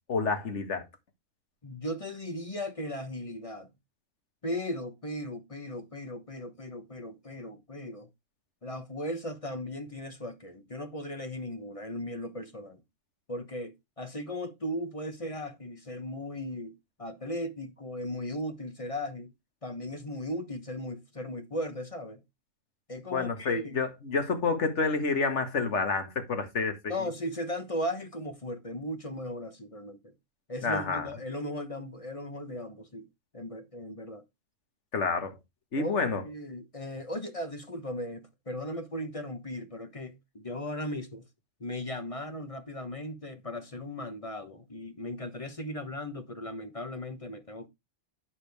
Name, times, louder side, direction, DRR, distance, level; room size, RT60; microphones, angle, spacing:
voice 1, 0.1-0.8 23.1-26.9 30.6-31.1 34.9-35.4 35.7-36.2, left 4 dB, 55° left, 2.0 m, -29 dB
voice 2, 1.6-3.7 4.4-8.1 8.6-12.8 13.3-19.3 19.6-22.2 22.9-23.8 26.9-30.1 30.5-33.1 33.3-34.2 35.7-41.2 41.6-47.7, left 1 dB, 25° left, 1.0 m, -37 dB
9.7 x 6.7 x 3.4 m
omnidirectional pair, 1.5 m